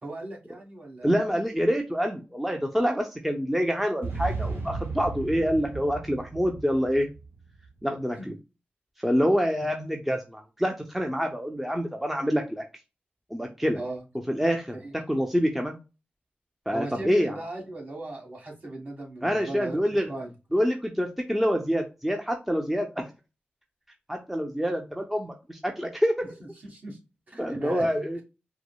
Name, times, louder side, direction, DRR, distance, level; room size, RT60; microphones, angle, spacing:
voice 1, 0.0-1.2 8.2-8.3 13.7-14.0 14.7-14.9 16.7-19.8 20.1-20.3 26.6-27.0 27.3-27.9, right 2 dB, 40° right, 1 dB, 1.5 m, -38 dB
voice 2, 1.0-7.1 7.8-8.3 9.0-12.6 13.3-13.8 14.3-15.8 16.7-17.4 19.2-20.1 20.5-23.0 24.1-26.2 27.4-28.2, equal, 5° right, 2 dB, 0.6 m, -26 dB
sound 1, 4.0-7.5, right 4 dB, 75° right, 1.2 m, -35 dB
4.7 x 2.0 x 2.2 m, 0.28 s
cardioid pair, 55°, 4 cm